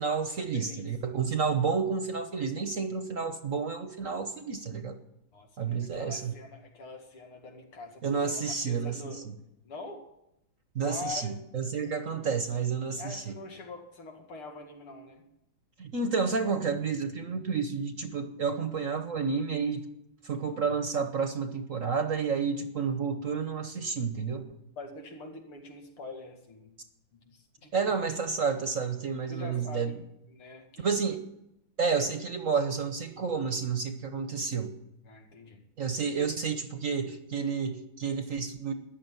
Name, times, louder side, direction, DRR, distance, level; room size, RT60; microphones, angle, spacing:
voice 1, 0.0-5.0 5.6-6.3 8.0-9.3 10.7-13.4 15.8-19.9 20.2-24.6 27.7-29.9 30.8-31.3 31.8-34.8 35.8-38.7, right 5 dB, 50° right, 8 dB, 1.1 m, -30 dB
voice 2, 5.3-9.3 9.6-10.1 10.8-11.4 11.8-11.9 13.0-15.3 24.8-26.7 27.1-28.0 29.3-30.0 30.3-30.9 35.0-35.6, left 3 dB, 90° left, 3 dB, 3.2 m, -44 dB
14.0 x 10.5 x 9.1 m, 0.84 s
omnidirectional pair, 2.3 m